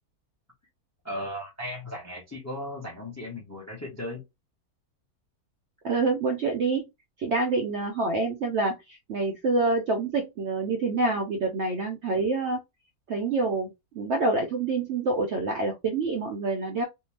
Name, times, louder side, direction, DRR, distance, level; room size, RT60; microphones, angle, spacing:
voice 1, 1.0-4.2, left 1 dB, 15° left, 0.5 m, -36 dB
voice 2, 5.8-6.8 7.2-12.6 13.1-16.8, right 3 dB, 65° right, 0.7 m, -27 dB
2.7 x 2.2 x 3.2 m
omnidirectional pair, 1.6 m